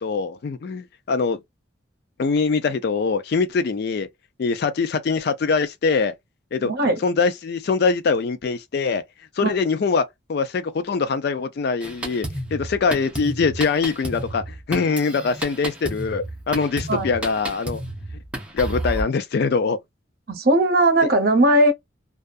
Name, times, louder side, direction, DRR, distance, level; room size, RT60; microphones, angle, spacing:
voice 1, 0.0-1.4 2.2-4.1 4.4-6.1 6.5-6.7 7.0-9.0 9.4-12.3 12.5-17.8 18.5-19.8 21.0-21.1, left 4 dB, 55° left, 0.3 m, -23 dB
voice 2, 6.6-7.0 9.4-9.5 16.9-17.1 20.3-21.7, right 1 dB, 50° right, 0.7 m, -18 dB
Drum kit, 11.8-19.0, right 1 dB, 5° right, 0.7 m, -32 dB
2.6 x 2.3 x 2.3 m
head